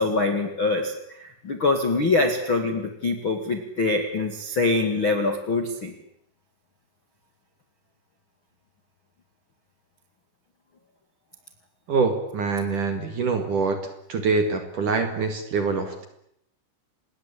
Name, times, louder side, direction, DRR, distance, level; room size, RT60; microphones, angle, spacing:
voice 1, 0.0-5.9, left 3 dB, 45° left, 5 dB, 1.6 m, -24 dB
voice 2, 11.9-13.8 14.1-16.1, right 4 dB, 55° right, 7 dB, 2.7 m, -24 dB
27.5 x 21.0 x 8.5 m, 0.74 s
omnidirectional pair, 5.8 m